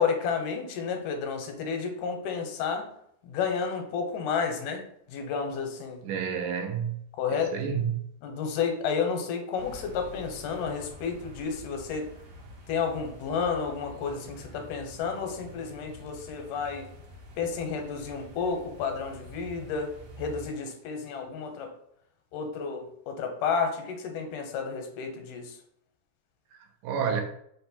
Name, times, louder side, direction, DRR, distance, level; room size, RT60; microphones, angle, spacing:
voice 1, 0.0-2.9 3.2-4.8 5.1-6.0 7.2-7.5 8.2-12.1 12.7-16.9 17.4-21.7 22.3-25.6, left 6 dB, 85° left, 4 dB, 2.2 m, -31 dB
voice 2, 6.0-7.0 7.5-8.0 26.8-27.2, right 7 dB, 85° right, 4 dB, 2.1 m, -29 dB
sound 1, 9.6-20.5, equal, 65° right, 2.1 m, -47 dB
5.2 x 2.1 x 4.1 m, 0.71 s
omnidirectional pair, 3.6 m